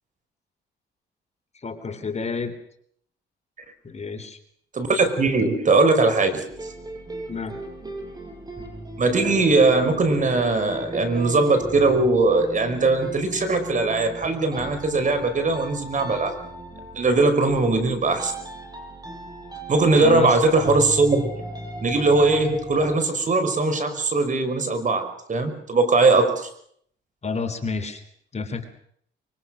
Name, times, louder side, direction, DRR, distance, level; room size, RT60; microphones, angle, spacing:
voice 1, 1.6-2.5 3.8-4.4 7.3-7.6 20.0-20.4 27.2-28.0 28.3-28.6, left 4 dB, 35° left, 7 dB, 3.5 m, -29 dB
voice 2, 4.7-6.4 9.0-16.4 17.0-18.3 19.7-21.3 21.8-26.5, right 3 dB, 40° right, 8 dB, 5.3 m, -20 dB
sound 1, 6.5-23.0, right 1 dB, 20° right, 7.2 m, -37 dB
24.5 x 24.0 x 6.4 m, 0.65 s
cardioid pair, 90°, 20 cm